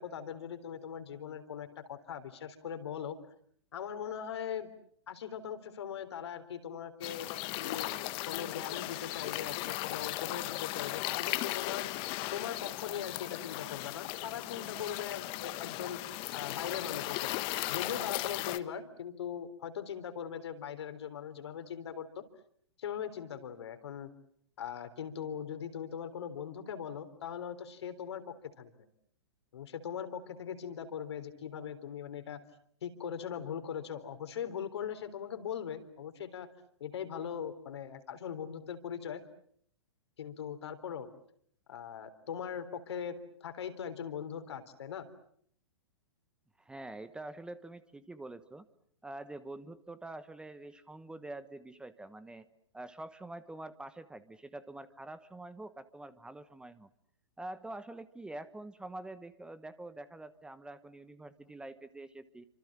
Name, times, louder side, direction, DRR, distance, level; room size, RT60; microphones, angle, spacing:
voice 1, 0.0-3.2 3.7-4.7 5.1-7.9 8.2-11.9 12.3-16.0 16.3-17.4 17.7-22.1 22.8-24.1 24.6-28.2 28.6-28.7 29.5-32.4 32.8-36.5 36.8-39.2 40.2-41.1 41.7-45.1, left 8 dB, 65° left, 9 dB, 3.8 m, -40 dB
sound 1, 7.0-18.6, left 19 dB, 35° left, 1.3 m, -37 dB
voice 2, 46.6-48.6 49.0-52.5 52.7-56.9 57.4-62.5, right 2 dB, 5° right, 13 dB, 1.1 m, -46 dB
29.0 x 26.0 x 7.5 m, 0.66 s
figure-of-eight pair, 115°, 15 cm